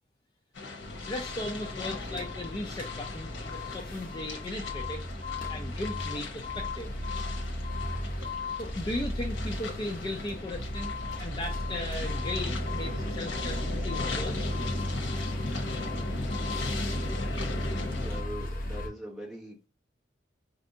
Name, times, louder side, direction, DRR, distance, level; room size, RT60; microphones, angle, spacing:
sound 1, 0.5-18.2, left 3 dB, 85° left, 0.9 m, -39 dB
sound 2, 0.8-18.9, left 1 dB, 45° left, 0.7 m, -35 dB
voice 1, 1.0-5.0 5.5-6.9 8.6-14.5, left 1 dB, 25° left, 0.3 m, -37 dB
voice 2, 18.0-19.7, right 1 dB, ahead, 0.9 m, -41 dB
4.2 x 2.6 x 2.6 m
head